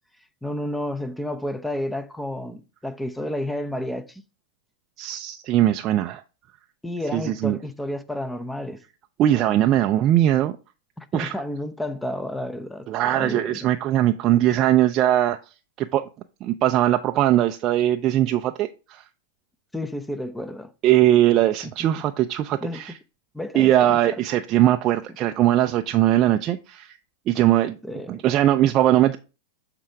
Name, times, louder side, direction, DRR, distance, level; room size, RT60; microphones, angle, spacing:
voice 1, 0.4-4.2 6.8-8.8 11.0-13.7 19.7-20.7 22.6-22.8 23.3-24.2 27.8-28.2, left 1 dB, 5° left, 0.8 m, -31 dB
voice 2, 5.0-6.2 7.1-7.6 9.2-10.5 11.1-11.3 12.9-15.4 15.8-16.1 16.4-19.0 20.8-22.9 23.5-27.0 27.3-27.8 28.1-29.2, right 13 dB, 40° right, 0.5 m, -20 dB
7.5 x 3.8 x 4.6 m
hypercardioid pair, 105°, 0 cm